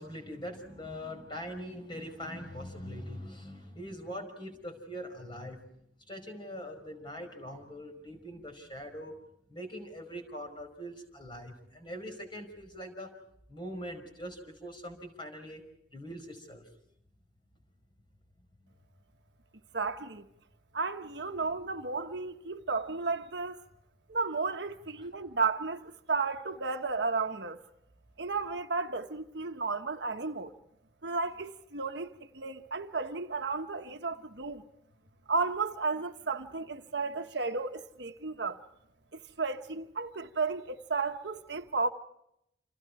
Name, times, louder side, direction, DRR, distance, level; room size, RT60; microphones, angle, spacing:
voice 1, 0.0-5.6 6.1-9.2 9.5-13.1 13.5-15.6 15.9-16.6 25.0-25.1, equal, 25° left, 5.2 m, -42 dB
voice 2, 19.7-20.3 20.7-23.6 24.1-27.6 28.2-30.5 31.0-34.6 35.3-38.6 39.1-41.9, right 4 dB, 65° right, 1.2 m, -33 dB
29.5 x 27.5 x 4.8 m
head